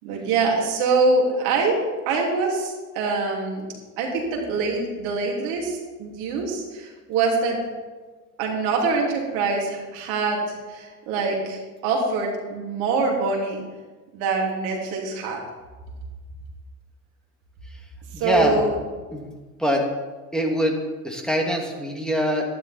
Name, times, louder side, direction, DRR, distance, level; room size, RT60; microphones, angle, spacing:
voice 1, 0.0-1.8 2.1-7.6 8.4-13.6 14.1-15.4 18.2-18.7, right 3 dB, 70° right, -1 dB, 3.1 m, -24 dB
voice 2, 18.1-18.6 19.1-19.2 19.6-19.8 20.3-20.7 21.0-22.4, equal, ahead, 0 dB, 2.5 m, -23 dB
11.5 x 11.0 x 4.5 m, 1.3 s
hypercardioid pair, 70°, 43 cm